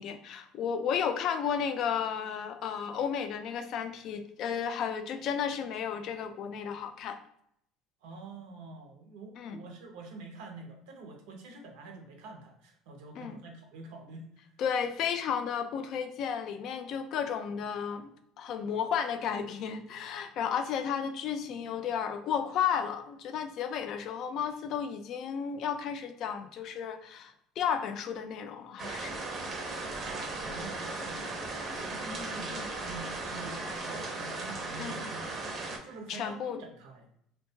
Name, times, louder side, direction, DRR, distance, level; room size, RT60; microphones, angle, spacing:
voice 1, 0.0-7.2 9.4-9.6 13.2-13.4 14.6-29.3 32.5-32.7 34.8-35.0 36.1-36.6, left 7 dB, 60° left, 8 dB, 0.3 m, -33 dB
voice 2, 8.0-14.2 30.1-33.6 33.9-35.3 35.6-37.1, right 3 dB, 80° right, 3 dB, 0.6 m, -46 dB
sound 1, 28.8-35.8, right 2 dB, 40° right, 0.6 m, -37 dB
2.7 x 2.2 x 2.7 m, 0.72 s
supercardioid pair, 105°, 0 cm